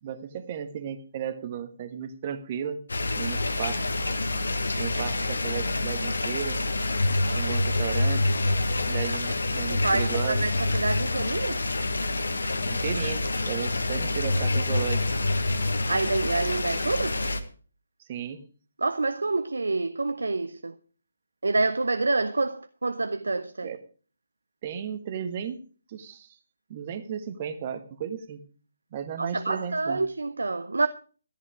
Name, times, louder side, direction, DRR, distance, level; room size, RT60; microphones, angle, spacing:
voice 1, 0.0-2.8 3.2-3.9 4.8-6.6 7.4-8.3 8.9-10.5 12.6-15.1 18.0-18.4 23.6-23.8 24.6-25.6 25.9-26.4 26.7-28.4 28.9-30.0, right 8 dB, 30° right, 1.4 m, -34 dB
sound 1, 2.9-17.4, left 2 dB, 65° left, 1.4 m, -27 dB
voice 2, 9.8-11.6 15.9-17.3 18.8-20.8 21.4-23.7 29.2-30.9, right 3 dB, 65° right, 0.7 m, -27 dB
14.0 x 11.0 x 4.9 m
figure-of-eight pair, 145°, 0 cm